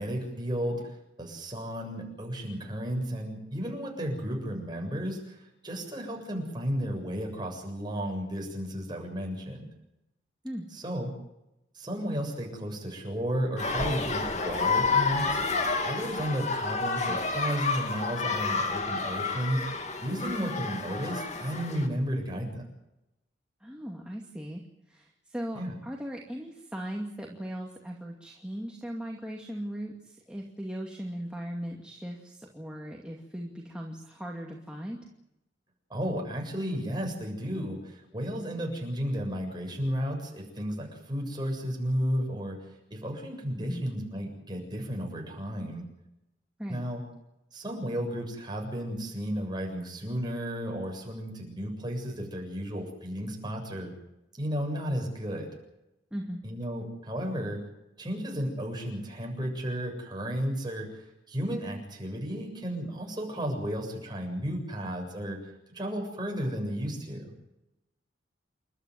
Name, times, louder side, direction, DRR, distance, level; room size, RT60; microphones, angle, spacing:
voice 1, 0.0-9.7 10.7-11.1 11.7-15.4 15.8-22.7 25.5-25.7 35.9-45.9 46.7-47.0 47.5-53.9 54.4-55.5 56.4-57.6 58.0-65.5 65.7-67.3, equal, 25° right, 1 dB, 7.4 m, -33 dB
sound 1, 13.6-21.9, left 4 dB, 40° left, 2.5 m, -30 dB
voice 2, 23.6-24.6 24.9-35.0 43.6-43.8 46.6-46.8 56.1-56.4, equal, 5° right, -1 dB, 2.4 m, -38 dB
29.0 x 13.0 x 9.5 m, 0.88 s
head